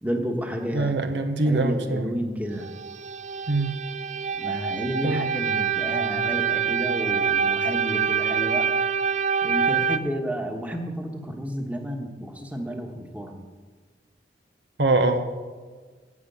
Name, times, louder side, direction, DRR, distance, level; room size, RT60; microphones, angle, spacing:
voice 1, 0.0-0.9 1.4-2.7 4.3-8.7 9.4-13.5, equal, 10° right, 2 dB, 1.3 m, -31 dB
voice 2, 0.7-2.1 3.5-3.8 5.0-5.3 14.8-15.2, right 2 dB, 75° right, 7 dB, 1.1 m, -23 dB
sound 1, 2.5-10.0, right 7 dB, 40° right, 0.4 m, -25 dB
9.6 x 7.8 x 9.3 m, 1.5 s
head